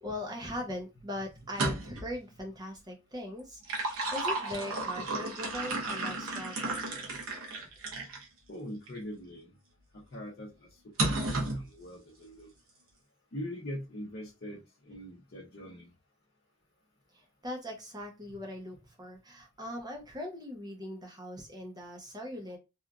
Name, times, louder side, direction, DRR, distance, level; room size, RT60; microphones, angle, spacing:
voice 1, 0.0-7.3 17.1-22.6, left 1 dB, 20° right, 1 dB, 0.6 m, -41 dB
sound 1, 1.4-2.1 3.4-8.2 8.9-9.0 11.0-11.6, right 2 dB, 85° right, 0.9 m, -33 dB
voice 2, 8.5-9.5 9.9-10.5 11.0-12.5 13.3-15.9, equal, 50° left, -6 dB, 0.7 m, -42 dB
2.8 x 2.4 x 2.3 m, 0.25 s
head